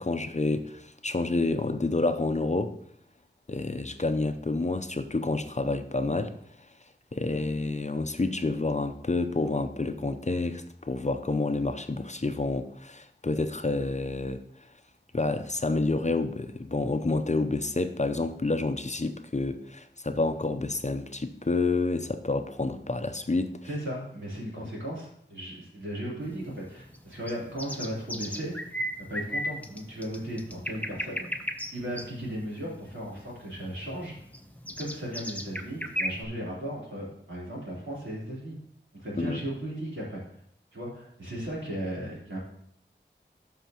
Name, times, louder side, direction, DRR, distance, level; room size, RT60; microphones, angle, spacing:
voice 1, 0.0-2.8 3.5-6.3 7.1-14.4 15.1-23.6 24.6-24.7 39.2-39.4, left 3 dB, 35° left, 0.6 m, -29 dB
voice 2, 23.6-28.5 29.0-31.3 31.7-34.2 34.8-38.5 39.0-40.2 40.7-42.4, right 1 dB, 80° right, 3.5 m, -36 dB
sound 1, 26.2-36.2, equal, 10° left, 0.8 m, -36 dB
12.5 x 5.6 x 3.0 m
wide cardioid pair, 40°, 20 cm